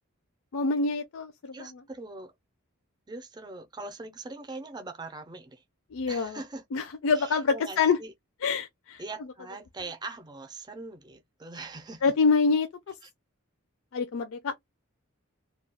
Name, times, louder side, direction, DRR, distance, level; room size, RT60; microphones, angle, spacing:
voice 1, 0.5-1.8 5.9-6.4 6.7-8.0 8.4-9.0 12.0-12.7 13.9-14.5, left 4 dB, 65° left, 0.4 m, -26 dB
voice 2, 1.5-2.3 3.1-5.6 6.1-6.6 7.2-8.1 9.0-12.0, right 3 dB, 20° right, 0.5 m, -41 dB
2.3 x 2.2 x 3.4 m
head